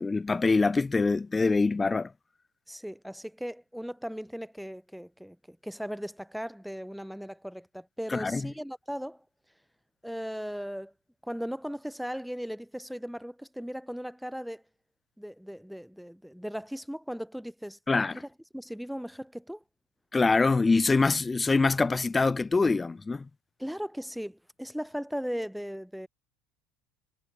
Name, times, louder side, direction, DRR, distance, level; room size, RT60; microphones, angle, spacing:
voice 1, 0.0-2.1 8.1-8.5 17.9-18.2 20.1-23.3, left 3 dB, 20° left, 3.3 m, -24 dB
voice 2, 2.7-9.2 10.0-10.9 11.2-14.6 15.2-17.8 18.1-18.3 18.5-19.6 23.6-26.1, equal, ahead, 2.7 m, -37 dB
supercardioid pair, 95°, 0 cm